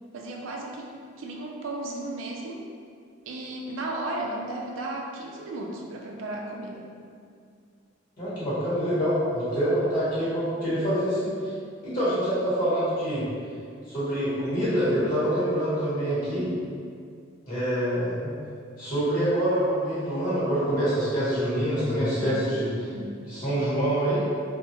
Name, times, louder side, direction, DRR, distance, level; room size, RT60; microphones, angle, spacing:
voice 1, 0.1-2.6 3.3-6.9 22.2-23.3, right 2 dB, 80° right, 0 dB, 0.4 m, -35 dB
voice 2, 8.2-11.5 11.8-13.2 13.9-16.5 17.5-18.3 18.8-22.7 23.2-24.3, equal, 40° left, -12 dB, 1.3 m, -26 dB
2.3 x 2.3 x 2.9 m, 2.2 s
head